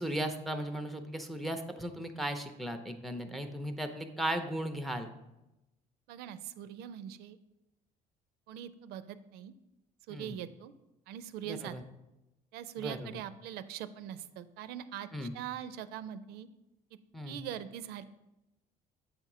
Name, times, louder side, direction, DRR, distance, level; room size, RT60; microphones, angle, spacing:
voice 1, 0.0-5.1 10.1-10.4 11.4-11.8 12.8-13.1 15.1-15.3 17.1-17.4, right 1 dB, ahead, 7 dB, 0.5 m, -36 dB
voice 2, 6.1-7.4 8.5-9.5 10.1-10.7 11.1-11.8 12.5-16.5 17.3-18.1, right 10 dB, 85° right, 13 dB, 0.4 m, -42 dB
7.7 x 2.8 x 5.9 m, 0.96 s
cardioid pair, 130°, 16 cm